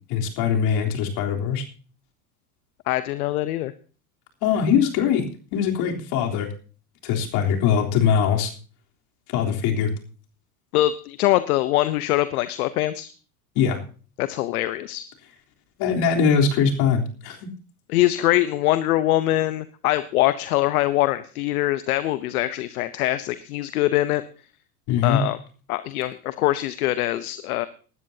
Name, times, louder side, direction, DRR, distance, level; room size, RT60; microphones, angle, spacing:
voice 1, 0.1-1.6 4.4-6.5 7.0-8.5 9.3-9.9 13.6-13.8 15.8-17.5 24.9-25.2, left 7 dB, 60° left, 1 dB, 3.6 m, -22 dB
voice 2, 2.9-3.7 10.7-13.1 14.2-15.0 17.9-24.2 25.0-25.4 25.7-27.7, left 15 dB, 75° left, 13 dB, 0.9 m, -23 dB
19.5 x 13.0 x 2.8 m, 0.38 s
hypercardioid pair, 95°, 44 cm